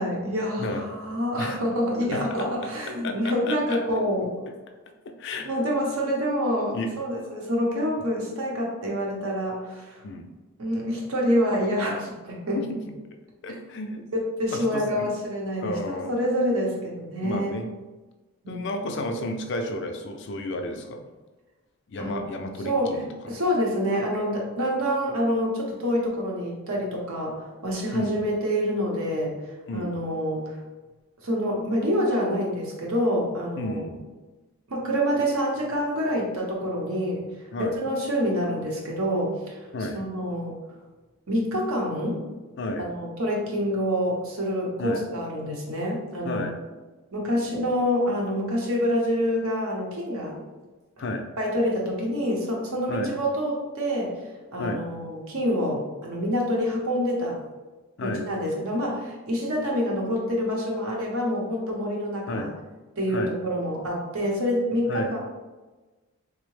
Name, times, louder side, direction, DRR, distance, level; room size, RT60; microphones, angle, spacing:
voice 1, 0.0-4.3 5.4-10.0 10.6-12.6 13.5-13.6 14.1-17.6 18.4-18.6 22.0-30.6 31.2-33.8 34.7-37.2 37.6-39.7 39.9-40.5 41.3-42.2 42.8-46.5 47.1-50.3 51.4-54.1 54.5-57.4 58.0-62.5 63.0-65.2, equal, 80° right, -2 dB, 0.8 m, -27 dB
voice 2, 3.0-3.8 5.2-5.5 6.7-6.9 10.0-10.3 12.6-12.9 13.4-14.0 14.5-15.1 15.6-16.1 17.2-17.7 18.5-21.0 21.9-23.1 27.9-28.3 29.7-30.0 33.6-34.0 37.5-37.7 39.7-40.0 42.6-42.9 44.8-45.0 46.2-46.5 51.0-51.2 52.9-53.1 54.6-54.8 58.0-58.2 62.3-62.5 63.1-63.3 64.9-65.1, left 1 dB, 50° left, 4 dB, 0.3 m, -32 dB
3.5 x 2.0 x 3.1 m, 1.2 s
head